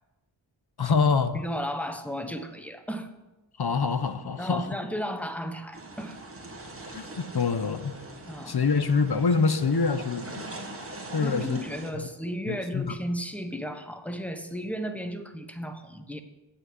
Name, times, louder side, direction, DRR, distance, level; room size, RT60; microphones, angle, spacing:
voice 1, 0.8-1.4 3.6-4.7 6.9-7.9 8.4-10.5 11.1-11.6 11.9-12.1 12.5-13.0, left 5 dB, 50° left, 11 dB, 0.9 m, -25 dB
voice 2, 1.3-3.1 4.4-6.2 8.3-8.6 11.2-16.2, equal, 5° left, 8 dB, 1.1 m, -34 dB
sound 1, 5.7-11.9, right 2 dB, 30° right, 1.8 m, -42 dB
8.9 x 8.2 x 8.0 m, 1.1 s
wide cardioid pair, 70°, 48 cm